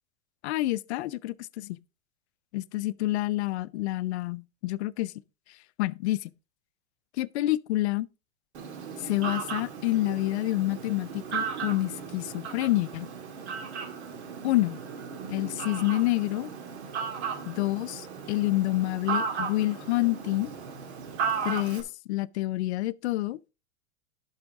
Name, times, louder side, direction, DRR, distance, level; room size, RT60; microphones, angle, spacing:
voice 1, 0.4-1.8 2.5-5.1 5.8-6.2 7.2-8.1 9.0-13.1 14.4-14.8 15.3-16.5 17.5-20.5 21.4-23.4, left 18 dB, 75° left, 0.5 m, -28 dB
Fowl, 8.5-21.8, right 6 dB, 80° right, 2.0 m, -36 dB
11.5 x 5.7 x 3.5 m
supercardioid pair, 145°, 33 cm